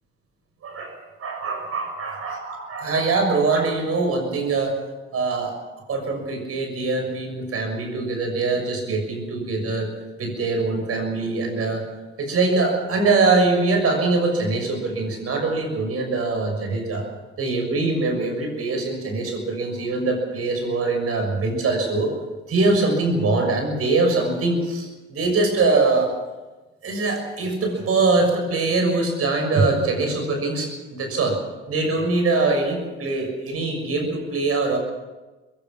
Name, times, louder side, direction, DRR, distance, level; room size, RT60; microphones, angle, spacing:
voice 1, 0.6-4.8 5.1-5.5 5.9-9.9 10.2-11.8 12.2-17.1 17.4-22.1 22.5-26.1 26.8-31.4 31.7-34.8, right 3 dB, 50° right, 4 dB, 6.5 m, -23 dB
21.5 x 17.5 x 7.4 m, 1.2 s
hypercardioid pair, 55°, 31 cm